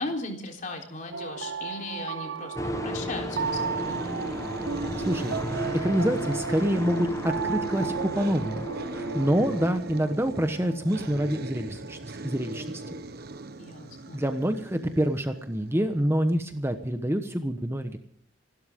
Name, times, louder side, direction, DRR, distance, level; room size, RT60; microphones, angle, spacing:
voice 1, 0.0-4.1 13.6-14.2, left 2 dB, 45° left, 2 dB, 3.7 m, -37 dB
sound 1, 1.1-15.4, right 5 dB, 70° right, 0.6 m, -36 dB
sound 2, 2.6-9.8, equal, 15° left, 1.2 m, -34 dB
sound 3, 3.3-16.2, right 2 dB, 55° right, 1.2 m, -40 dB
voice 2, 5.0-5.4 5.7-12.8 14.1-18.0, equal, 15° right, 7 dB, 1.1 m, -27 dB
27.5 x 12.5 x 3.7 m, 0.63 s
head